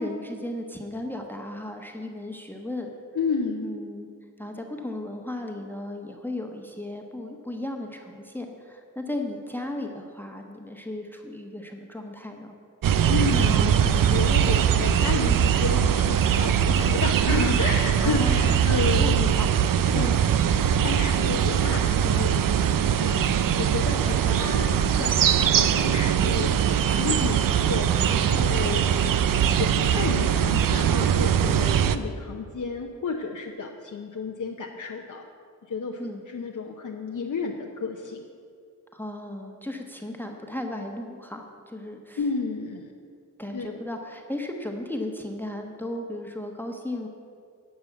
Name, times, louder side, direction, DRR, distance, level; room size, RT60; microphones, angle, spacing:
voice 1, 0.0-2.9 3.6-4.1 4.4-12.5 18.0-18.7 19.0-19.6 19.9-20.2 24.1-24.5 36.0-36.2 38.9-42.2 43.4-47.1, left 1 dB, 5° left, 2 dB, 1.2 m, -35 dB
voice 2, 3.1-3.8 13.0-19.4 19.9-20.5 20.8-24.7 25.0-26.6 26.9-29.3 29.6-35.3 35.7-36.0 36.3-38.2 42.2-42.9 43.5-43.8, left 4 dB, 70° left, 1 dB, 0.9 m, -31 dB
sound 1, 12.8-32.0, right 9 dB, 80° right, 0.5 m, -22 dB
12.0 x 5.5 x 8.2 m, 2.2 s
cardioid pair, 60°, 33 cm